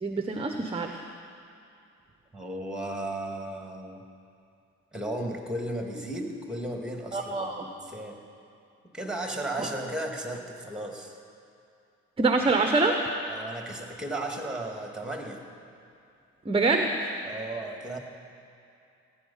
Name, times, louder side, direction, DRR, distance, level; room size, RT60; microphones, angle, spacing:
voice 1, 0.0-1.0 7.1-7.7 12.2-13.0 16.5-16.9, right 3 dB, 20° right, 4 dB, 0.9 m, -25 dB
voice 2, 2.3-4.0 4.9-8.2 8.9-11.2 13.3-15.4 17.2-18.0, right 1 dB, 5° right, 2 dB, 2.1 m, -35 dB
18.0 x 9.5 x 5.7 m, 2.6 s
cardioid pair, 90°, 30 cm